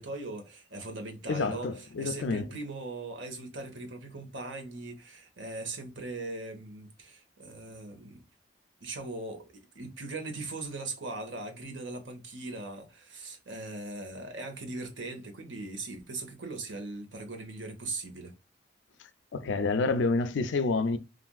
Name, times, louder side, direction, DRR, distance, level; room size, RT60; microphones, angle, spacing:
voice 1, 0.0-8.2 8.8-18.3, right 2 dB, 90° right, 1.1 m, -40 dB
voice 2, 1.3-2.5 19.3-21.0, left 3 dB, 80° left, 0.4 m, -28 dB
3.3 x 2.5 x 2.3 m
head